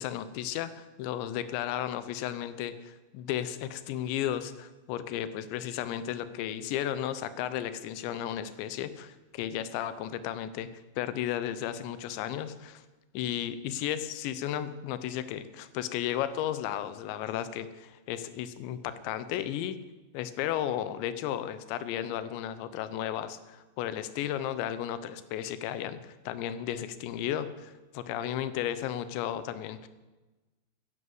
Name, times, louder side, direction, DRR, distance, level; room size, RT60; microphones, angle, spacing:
voice 1, 0.0-10.7 11.0-12.8 13.1-19.8 20.1-29.9, left 11 dB, 90° left, 13 dB, 3.1 m, -34 dB
11.5 x 11.0 x 7.8 m, 1.1 s
omnidirectional pair, 5.0 m